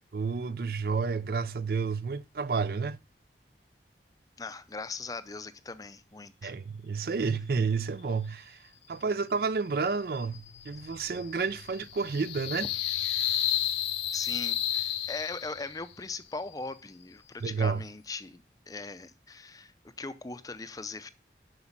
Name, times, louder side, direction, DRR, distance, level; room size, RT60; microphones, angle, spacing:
voice 1, 0.1-3.0 6.4-8.6 8.9-12.7 17.4-17.8, right 5 dB, 55° right, 0.4 m, -30 dB
voice 2, 4.4-6.5 14.1-18.4 18.7-19.7 20.0-21.1, left 3 dB, 20° left, 0.5 m, -39 dB
sound 1, 9.9-15.8, left 11 dB, 80° left, 0.7 m, -32 dB
8.0 x 6.1 x 7.2 m
head